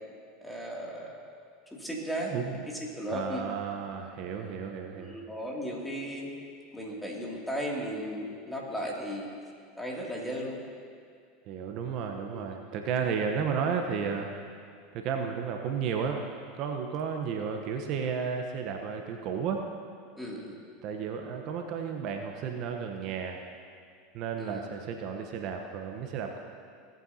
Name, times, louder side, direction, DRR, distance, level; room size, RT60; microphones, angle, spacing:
voice 1, 0.4-1.1 1.7-2.3 2.7-3.5 4.9-6.3 6.7-9.3 9.8-10.6 12.3-12.4 20.2-20.6 24.4-24.6, equal, 5° left, -3 dB, 2.6 m, -35 dB
voice 2, 3.1-5.2 11.5-14.3 14.9-16.2 16.5-19.6 20.8-23.5 24.1-26.4, right 6 dB, 55° right, 3 dB, 1.0 m, -33 dB
18.0 x 9.1 x 2.8 m, 2.2 s
hypercardioid pair, 90°, 0 cm